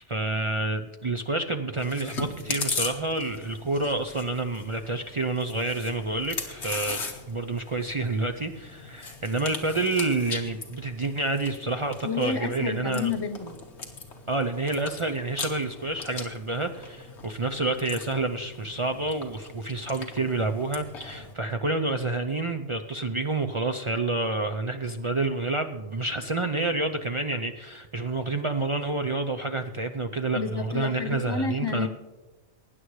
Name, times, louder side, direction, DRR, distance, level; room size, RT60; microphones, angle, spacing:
voice 1, 0.0-7.0 7.3-13.1 14.3-31.9, right 2 dB, 55° right, 6 dB, 0.3 m, -28 dB
Chewing mastication, 1.8-21.3, left 4 dB, 55° left, 1.7 m, -39 dB
voice 2, 12.0-13.6 30.3-31.9, left 5 dB, 25° left, 6 dB, 0.6 m, -30 dB
20.5 x 9.6 x 3.2 m, 1.1 s
omnidirectional pair, 1.4 m